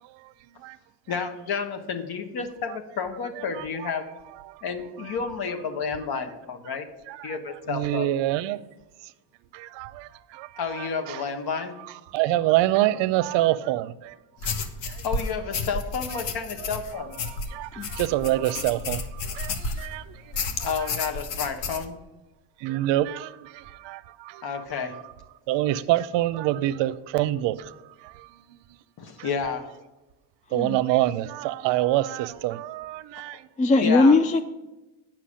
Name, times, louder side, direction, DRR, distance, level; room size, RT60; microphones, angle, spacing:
voice 1, 1.1-4.0 4.6-6.9 7.2-8.1 10.6-11.8 15.0-17.2 20.6-21.9 24.4-24.9 29.0-29.7 33.2-33.3 33.8-34.2, left 5 dB, 55° left, 1.3 m, -30 dB
voice 2, 7.7-8.6 9.5-10.5 10.8-11.2 12.1-14.1 14.4-14.5 17.3-19.0 19.3-20.0 22.6-23.4 23.8-24.4 25.5-27.7 29.2-29.3 30.5-33.4, right 15 dB, 75° right, 0.6 m, -26 dB
sound 1, 14.4-19.9 20.3-21.9, left 4 dB, 80° left, 1.2 m, -32 dB
voice 3, 33.6-34.4, left 3 dB, 20° left, 0.3 m, -19 dB
8.5 x 6.0 x 6.3 m
cardioid pair, 90°, 44 cm